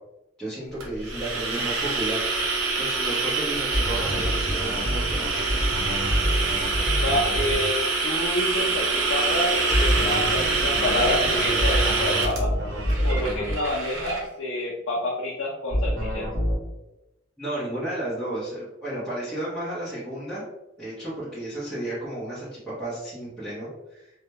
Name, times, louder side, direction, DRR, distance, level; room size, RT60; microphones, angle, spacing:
voice 1, 0.4-2.5 2.7-5.3 17.4-20.4 20.8-24.2, right 1 dB, 5° left, -12 dB, 0.7 m, -33 dB
sound 1, 0.8-14.2, right 4 dB, 85° right, 0.6 m, -26 dB
sound 2, 3.7-7.6 9.7-13.6 15.7-16.6, equal, 50° right, 0.9 m, -26 dB
voice 2, 7.0-12.5 13.0-16.3, left 1 dB, 70° left, -3 dB, 0.5 m, -28 dB
2.2 x 2.0 x 2.8 m, 0.96 s
head